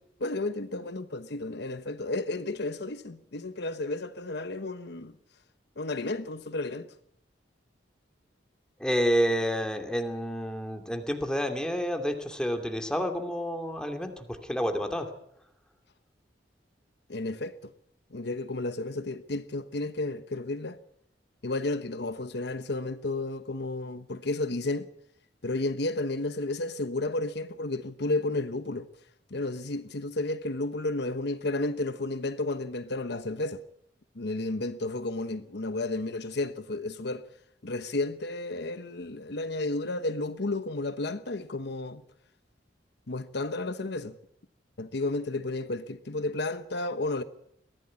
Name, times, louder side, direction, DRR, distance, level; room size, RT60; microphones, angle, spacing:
voice 1, 0.2-5.1 5.8-6.9 17.1-17.7 18.1-20.8 21.4-24.9 25.4-28.9 29.3-33.6 34.1-37.2 37.6-42.0 43.1-44.2 44.8-47.2, left 2 dB, 65° left, 1.1 m, -32 dB
voice 2, 8.8-15.1, equal, 5° left, 2.6 m, -29 dB
22.5 x 16.0 x 9.6 m
head